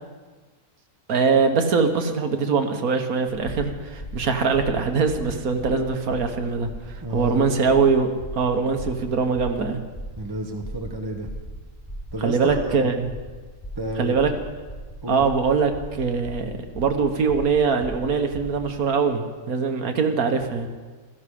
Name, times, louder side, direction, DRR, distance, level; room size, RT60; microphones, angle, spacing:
voice 1, 1.1-6.7 7.1-8.1 8.3-9.8 12.2-13.1 14.0-14.3 15.1-20.7, right 5 dB, 80° right, 6 dB, 1.7 m, -22 dB
sound 1, 3.4-18.7, right 1 dB, 15° left, 2.5 m, -38 dB
voice 2, 7.0-7.5 10.2-11.3 12.1-13.0 13.8-14.1 15.0-15.2, right 1 dB, 20° right, 2 dB, 1.0 m, -31 dB
15.5 x 14.0 x 5.0 m, 1.4 s
omnidirectional pair, 1.5 m